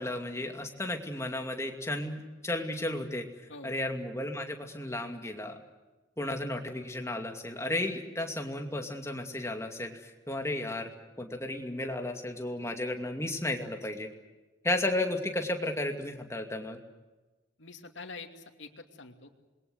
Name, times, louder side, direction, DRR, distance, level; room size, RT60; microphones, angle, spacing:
voice 1, 0.0-3.2 3.6-5.6 6.2-10.9 11.2-14.1 14.6-16.8, left 1 dB, 15° left, 4 dB, 2.4 m, -33 dB
voice 2, 17.6-19.3, left 3 dB, 85° left, 5 dB, 2.6 m, -46 dB
27.0 x 22.0 x 8.0 m, 1.2 s
head